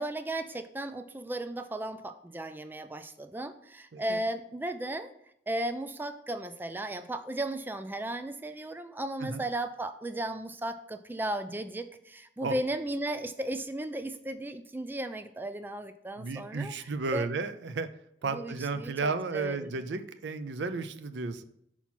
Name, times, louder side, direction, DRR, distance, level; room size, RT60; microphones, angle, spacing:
voice 1, 0.0-5.1 5.5-17.3 18.2-19.7, right 1 dB, 10° right, 10 dB, 0.4 m, -35 dB
voice 2, 16.2-17.9 18.2-21.4, right 4 dB, 85° right, 11 dB, 0.5 m, -33 dB
5.7 x 4.3 x 5.8 m, 0.75 s
head